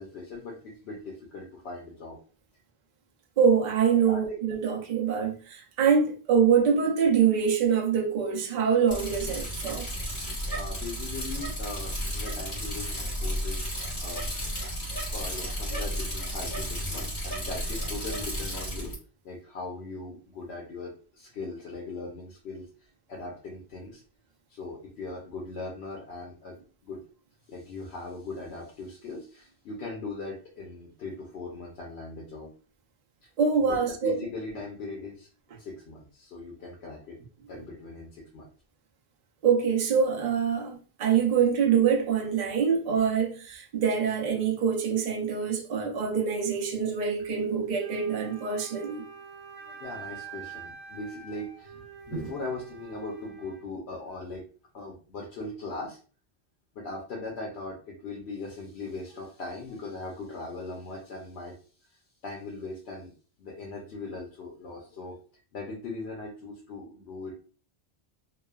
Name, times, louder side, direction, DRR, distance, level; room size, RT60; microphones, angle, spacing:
voice 1, 0.0-2.2 4.1-4.2 10.5-13.7 14.0-14.5 14.9-18.9 19.2-24.0 24.5-26.6 26.8-27.0 27.5-32.5 33.6-35.3 35.6-37.2 37.5-38.5 49.6-51.8 52.1-54.4 54.7-56.0 56.7-61.6 62.2-63.1 63.4-65.2 65.5-67.3, left 2 dB, 85° left, 1.0 m, -39 dB
voice 2, 3.4-9.9 33.4-34.2 37.5-37.6 39.4-49.0 52.1-52.2, right 6 dB, 50° right, 0.6 m, -25 dB
Bicycle, 8.9-18.9, equal, 45° left, 1.3 m, -33 dB
Wind instrument woodwind instrument, 47.8-53.7, right 6 dB, 70° right, 1.1 m, -45 dB
3.1 x 2.1 x 2.2 m
omnidirectional pair, 1.1 m